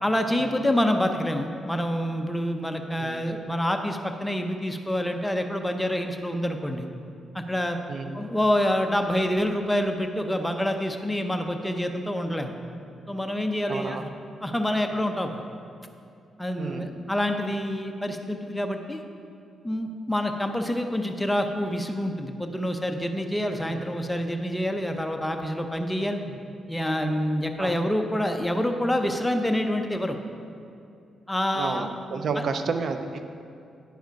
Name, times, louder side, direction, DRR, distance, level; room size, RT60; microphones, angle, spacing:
voice 1, 0.0-6.9 7.3-7.8 8.1-12.6 13.1-14.1 14.4-15.4 16.4-19.0 19.6-26.2 26.7-30.2 31.3-31.9 32.4-32.5, left 1 dB, 5° left, 5 dB, 0.7 m, -27 dB
voice 2, 7.9-8.3 13.7-14.2 16.6-17.0 23.7-23.8 26.3-26.4 27.6-27.7 31.5-33.0, right 5 dB, 60° right, 7 dB, 0.5 m, -31 dB
10.0 x 5.0 x 5.2 m, 2.5 s
cardioid pair, 90°, 0 cm